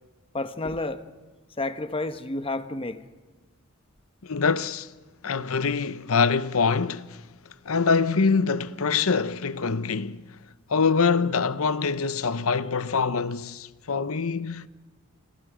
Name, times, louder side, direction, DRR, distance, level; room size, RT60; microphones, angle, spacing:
voice 1, 0.3-1.0 1.6-3.0, left 2 dB, 25° left, 1.0 m, -30 dB
voice 2, 4.3-4.9 5.2-7.2 7.7-10.2 10.7-14.7, left 5 dB, 70° left, 0.8 m, -24 dB
28.5 x 26.5 x 5.0 m
head